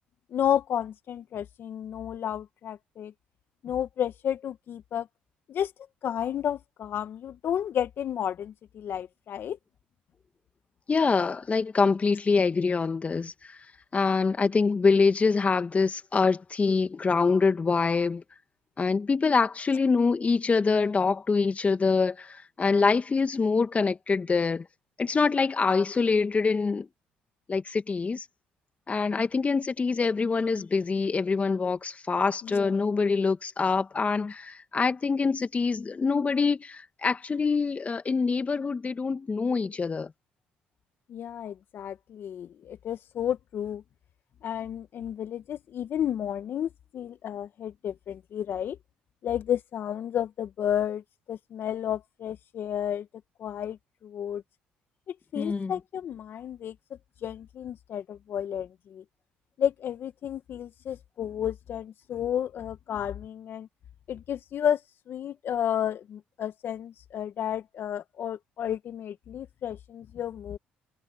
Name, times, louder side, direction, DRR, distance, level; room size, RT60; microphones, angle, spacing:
voice 1, 0.3-3.1 3.6-5.1 5.5-5.7 6.0-9.6 32.4-32.8 41.1-43.8 44.4-48.8 49.2-51.0 51.3-53.1 53.4-54.4 55.1-56.7 57.2-59.0 59.6-63.7 64.1-64.8 65.1-70.6, left 9 dB, 60° left, 1.6 m, -32 dB
voice 2, 10.9-13.3 13.9-18.2 18.8-24.7 25.0-26.9 27.5-28.2 28.9-40.1 55.4-55.7, left 4 dB, 30° left, 1.9 m, -25 dB
hypercardioid pair, 60°, 4 cm